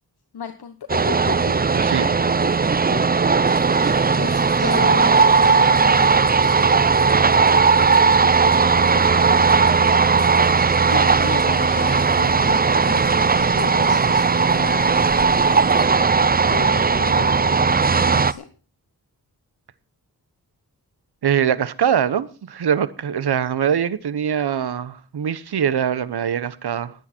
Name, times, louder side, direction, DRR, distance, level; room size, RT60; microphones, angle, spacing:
voice 1, 0.3-1.7 2.0-2.6 2.9-3.4 4.2-5.2 5.5-6.3 10.9-13.0 13.4-15.1 15.4-16.1 16.5-18.5, left 7 dB, 75° left, 1.1 m, -34 dB
sound 1, 0.9-18.3, right 5 dB, 25° right, 0.5 m, -17 dB
voice 2, 1.7-2.1 21.2-26.9, right 8 dB, 80° right, 0.9 m, -22 dB
sound 2, 3.5-15.9, left 3 dB, 55° left, 3.4 m, -42 dB
19.5 x 8.6 x 4.4 m
cardioid pair, 55°, 39 cm